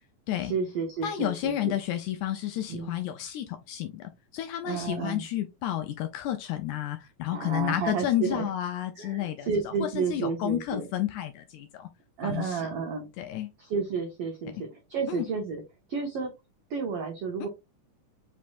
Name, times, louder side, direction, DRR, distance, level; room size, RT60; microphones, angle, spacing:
voice 1, 0.4-1.7 2.7-2.9 4.6-5.3 7.3-8.5 9.0-10.8 12.2-13.1 13.6-15.6 15.9-16.3 16.7-17.5, right 5 dB, 90° right, 1.3 m, -31 dB
voice 2, 1.0-9.5 10.0-11.9 12.2-12.6 13.2-13.5 14.6-14.7 15.1-15.2, left 12 dB, 80° left, 1.8 m, -31 dB
5.9 x 3.1 x 2.5 m
omnidirectional pair, 3.9 m